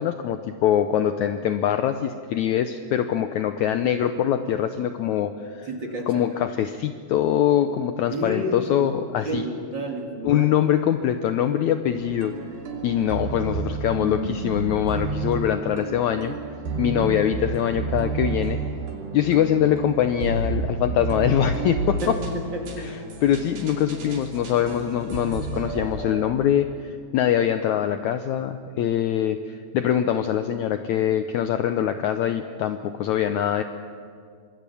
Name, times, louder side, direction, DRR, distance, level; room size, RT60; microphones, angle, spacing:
voice 1, 0.0-5.7 6.1-9.5 10.2-12.3 12.8-16.4 16.8-18.6 19.1-22.2 22.8-33.6, left 10 dB, 90° left, 8 dB, 1.6 m, -23 dB
voice 2, 5.7-6.4 8.1-8.9 9.2-10.5 22.0-22.9, equal, 35° right, 2 dB, 2.4 m, -30 dB
sound 1, 11.9-26.2, right 4 dB, 80° right, 4.9 m, -31 dB
26.0 x 21.0 x 7.1 m, 2.2 s
omnidirectional pair, 4.2 m